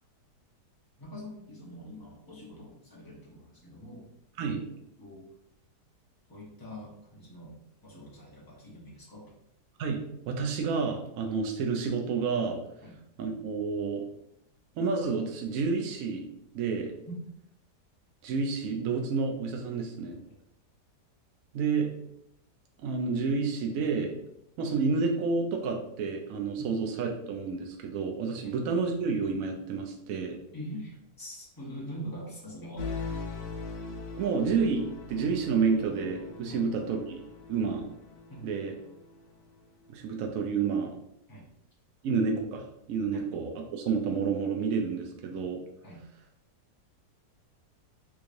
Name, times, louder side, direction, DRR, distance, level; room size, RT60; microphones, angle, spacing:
voice 1, 1.0-4.1 4.6-4.7 5.0-5.3 6.3-7.6 7.8-9.3 12.8-13.0 17.1-17.2 26.6-26.7 28.4-28.6 30.5-32.9 36.5-36.6 38.3-38.6 41.3-41.5 43.1-43.3 45.8-46.0, equal, 25° left, -5 dB, 0.5 m, -44 dB
voice 2, 9.8-12.6 13.2-14.0 14.8-16.3 16.5-16.9 18.2-20.2 21.5-21.9 22.8-24.2 24.6-30.4 34.2-37.2 37.5-37.9 38.4-38.7 39.9-40.9 42.0-45.6, right 5 dB, 70° right, 2 dB, 0.8 m, -29 dB
sound 1, 32.8-39.6, left 4 dB, 80° left, 1.2 m, -41 dB
3.6 x 3.1 x 2.5 m, 0.77 s
omnidirectional pair, 1.8 m